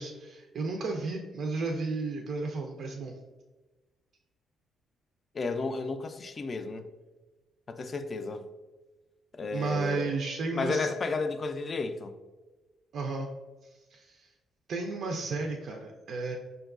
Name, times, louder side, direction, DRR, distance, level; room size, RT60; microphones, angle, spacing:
voice 1, 0.0-3.1 9.5-10.9 12.9-13.3 13.9-14.3 14.7-16.4, right 3 dB, 65° right, 0.3 m, -33 dB
voice 2, 5.3-6.9 7.7-8.4 9.3-10.1 10.5-12.1, left 3 dB, 40° left, 0.3 m, -32 dB
5.0 x 2.2 x 2.3 m
cardioid pair, 90°, 0 cm